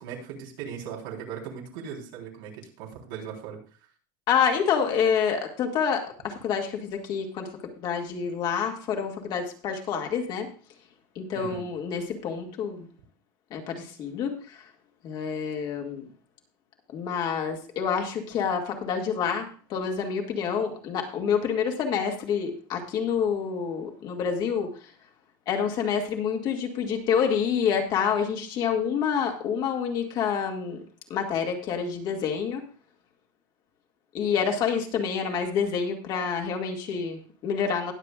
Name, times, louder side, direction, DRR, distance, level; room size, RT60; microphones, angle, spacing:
voice 1, 0.0-3.6 11.3-11.7, right 7 dB, 80° right, -1 dB, 3.8 m, -38 dB
voice 2, 4.3-7.5 7.8-10.5 11.2-12.9 13.5-14.6 15.0-16.1 16.9-24.7 25.5-30.8 31.1-32.6 34.1-37.9, left 7 dB, 40° left, 2 dB, 2.0 m, -27 dB
20.0 x 7.5 x 2.4 m, 0.40 s
cardioid pair, 160°, 11 cm